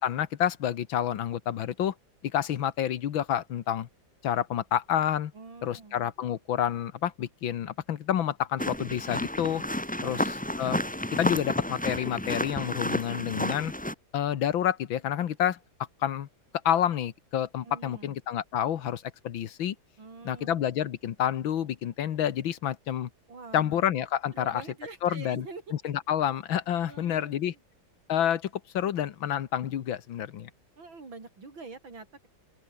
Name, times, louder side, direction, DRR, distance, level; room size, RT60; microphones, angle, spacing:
voice 1, 0.0-1.9 2.2-3.9 4.2-5.3 5.6-9.6 10.0-10.2 10.6-10.8 11.1-13.7 14.1-15.6 16.0-16.3 16.7-19.8 20.3-23.1 23.5-24.6 25.0-25.4 25.8-27.5 28.1-30.5, left 10 dB, 90° left, 2.0 m, -29 dB
voice 2, 5.3-6.0 10.0-10.3 17.6-18.2 20.0-20.9 23.3-23.8 24.3-25.7 26.9-27.6 30.8-32.3, right 4 dB, 85° right, 5.0 m, -45 dB
sound 1, 8.6-13.9, left 1 dB, 5° left, 1.1 m, -31 dB
open air
omnidirectional pair, 2.1 m